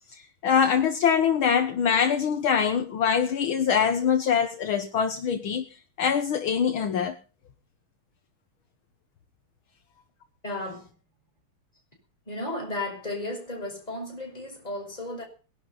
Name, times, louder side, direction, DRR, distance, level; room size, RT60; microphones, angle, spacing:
voice 1, 0.1-5.7 6.0-7.2, left 7 dB, 70° left, 2.0 m, -24 dB
voice 2, 10.4-10.9 12.3-15.2, left 2 dB, 15° left, 6.6 m, -34 dB
19.5 x 11.5 x 5.8 m
omnidirectional pair, 2.4 m